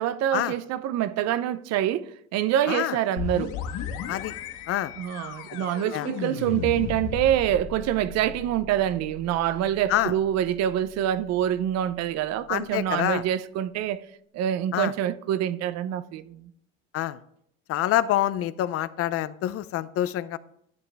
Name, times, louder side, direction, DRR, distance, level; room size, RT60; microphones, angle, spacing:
voice 1, 0.0-3.5 5.0-14.0 14.3-16.5, right 11 dB, 60° right, 0.6 m, -26 dB
sound 1, 3.2-12.7, left 7 dB, 80° left, 1.1 m, -37 dB
voice 2, 12.5-13.2 14.7-14.9 16.9-17.2 17.7-20.4, left 13 dB, 50° left, 0.5 m, -26 dB
12.0 x 7.0 x 3.4 m
cardioid pair, 125°, 30 cm